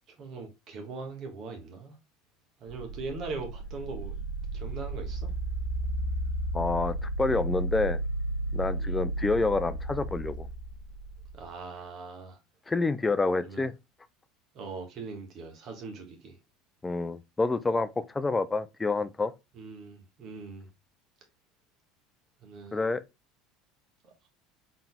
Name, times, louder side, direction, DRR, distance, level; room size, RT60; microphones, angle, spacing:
voice 1, 0.2-1.9 2.6-4.2 4.5-5.3 8.8-9.0 11.3-12.4 13.4-13.6 14.5-16.4 19.5-20.7 22.4-22.9 24.0-24.3, right 4 dB, 50° right, 1.4 m, -41 dB
sound 1, 2.7-11.4, right 1 dB, 75° right, 2.4 m, -33 dB
voice 2, 6.5-8.0 8.5-10.5 12.7-13.7 16.8-19.3 22.7-23.0, left 3 dB, 15° left, 0.5 m, -28 dB
4.1 x 3.9 x 2.3 m
hypercardioid pair, 75°, 0 cm